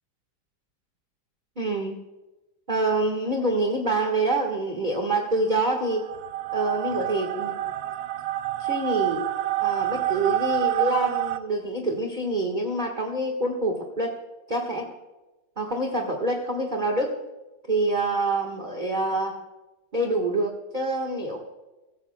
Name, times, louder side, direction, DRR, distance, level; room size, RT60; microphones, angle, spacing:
voice 1, 1.6-2.0 2.7-6.0 6.5-7.5 8.6-9.2 9.6-14.1 14.5-14.9 15.6-17.1 17.7-19.4 19.9-21.4, right 2 dB, 25° right, 1 dB, 1.4 m, -26 dB
sound 1, 5.7-11.4, right 14 dB, 70° right, 1.3 m, -27 dB
24.5 x 15.0 x 2.3 m, 1.1 s
omnidirectional pair, 2.3 m